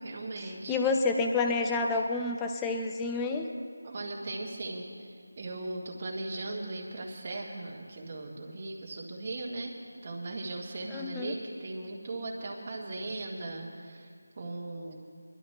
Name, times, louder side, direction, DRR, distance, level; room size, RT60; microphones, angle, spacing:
voice 1, 0.0-0.8 1.9-2.0 3.8-9.8 10.0-14.1 14.4-15.0, right 2 dB, 35° right, -1 dB, 1.9 m, -38 dB
voice 2, 0.7-3.5 10.9-11.3, left 3 dB, 10° left, 3 dB, 0.6 m, -29 dB
21.0 x 12.0 x 3.3 m, 2.3 s
figure-of-eight pair, 170°, 0 cm